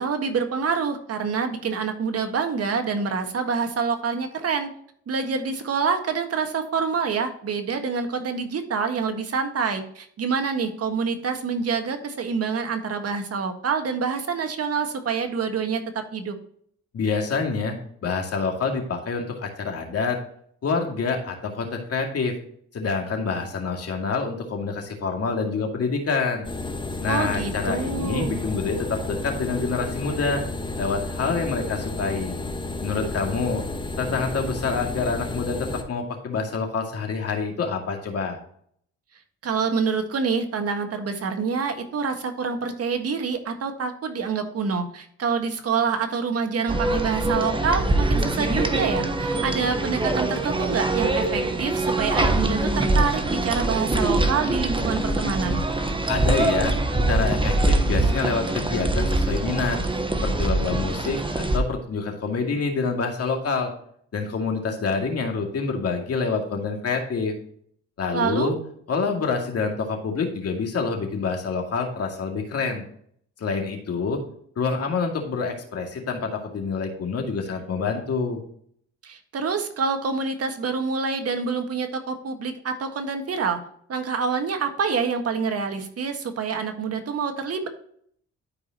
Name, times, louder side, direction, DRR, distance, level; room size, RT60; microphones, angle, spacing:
voice 1, 0.0-4.7 5.1-16.3 27.1-28.4 39.4-55.6 68.1-68.5 79.0-83.6 83.9-87.7, right 5 dB, 55° right, 6 dB, 1.6 m, -26 dB
voice 2, 16.9-17.8 18.0-20.2 20.6-22.4 22.7-26.4 27.0-30.4 30.8-32.4 32.8-33.6 34.0-38.4 56.1-56.7 57.1-59.8 60.2-63.7 64.1-67.3 68.0-68.6 68.9-72.8 73.4-74.2 74.6-78.4, left 4 dB, 55° left, 2 dB, 2.4 m, -27 dB
sound 1, 26.4-35.8, left 2 dB, 15° left, 1.3 m, -32 dB
sound 2, 46.7-61.6, right 2 dB, 15° right, 1.1 m, -23 dB
12.5 x 4.9 x 2.9 m, 0.64 s
cardioid pair, 90°, 30 cm